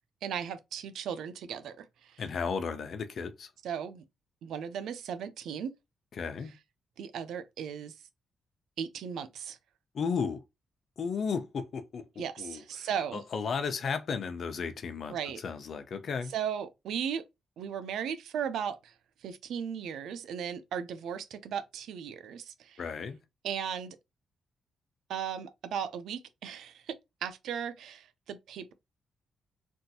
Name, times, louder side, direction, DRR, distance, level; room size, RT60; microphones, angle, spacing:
voice 1, 0.2-2.2 3.6-4.0 4.4-5.7 7.0-7.9 8.8-9.6 12.2-13.2 15.1-15.4 16.3-17.2 17.6-18.9 19.2-22.8 23.4-24.0 25.1-27.0 27.2-28.7, right 8 dB, 85° right, 0.5 m, -36 dB
voice 2, 2.2-3.5 6.1-6.5 9.9-10.4 11.0-16.3 22.8-23.2, left 5 dB, 55° left, 0.7 m, -34 dB
3.5 x 2.5 x 2.7 m
cardioid pair, 95°, 0 cm